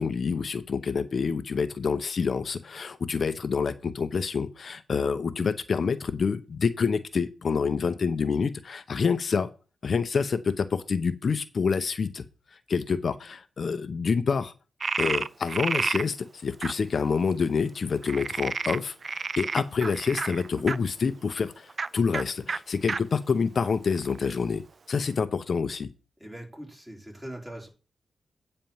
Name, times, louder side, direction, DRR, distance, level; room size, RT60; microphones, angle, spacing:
voice 1, 0.0-9.5 9.8-12.2 12.7-14.5 15.0-24.6 24.9-25.9, left 5 dB, 50° left, 10 dB, 0.8 m, -27 dB
Frog, 14.8-16.1 16.6-16.7 18.0-20.8 21.7-21.9 22.1-22.2 22.5-22.6 22.9-23.0 23.6-24.3, right 4 dB, 45° right, 0.4 m, -30 dB
voice 2, 26.2-27.7, right 1 dB, 15° right, 0 dB, 4.1 m, -41 dB
9.1 x 4.4 x 7.2 m, 0.34 s
wide cardioid pair, 105°, 0 cm